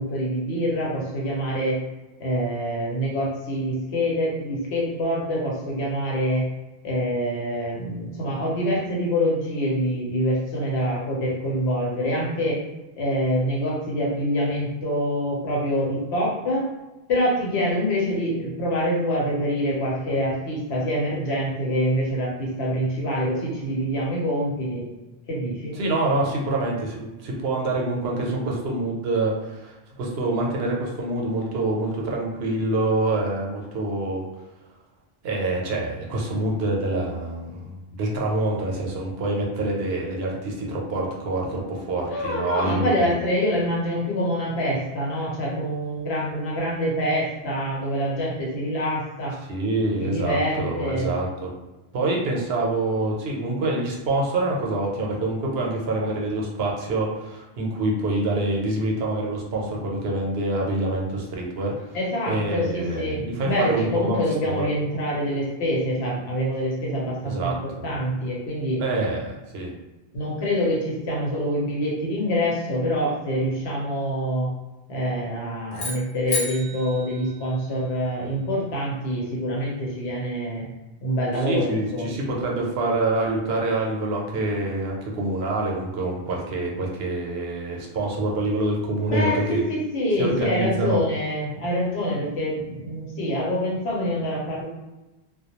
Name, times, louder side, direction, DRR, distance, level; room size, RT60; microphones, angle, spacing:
voice 1, 0.0-1.8 2.2-6.5 6.8-12.6 13.0-16.7 17.1-24.9 25.3-25.8 42.0-49.4 50.0-51.1 61.9-68.8 70.1-74.5 74.9-80.7 81.0-82.2 89.0-94.7, equal, 85° left, -4 dB, 1.0 m, -25 dB
voice 2, 25.8-34.3 35.2-43.1 49.5-51.5 51.9-62.0 62.3-64.2 64.4-64.7 67.2-67.9 68.8-69.2 69.5-69.7 81.5-89.6 90.2-91.0, right 2 dB, 75° right, -1 dB, 0.8 m, -26 dB
sound 1, 75.7-78.0, left 2 dB, 55° left, 0.9 m, -33 dB
2.2 x 2.1 x 2.9 m, 1.1 s
omnidirectional pair, 1.1 m